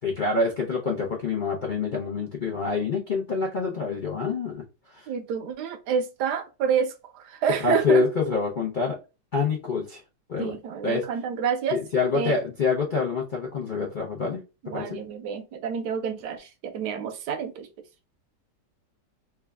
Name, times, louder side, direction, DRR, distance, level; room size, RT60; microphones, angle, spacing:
voice 1, 0.0-4.6 4.9-5.1 7.6-9.0 9.3-10.0 10.3-10.5 10.8-11.0 11.7-15.0, left 4 dB, 80° left, 0.4 m, -26 dB
voice 2, 5.1-8.0 10.4-11.8 12.1-12.3 14.6-17.7, right 7 dB, 75° right, 1.1 m, -28 dB
3.4 x 2.3 x 3.3 m
omnidirectional pair, 1.9 m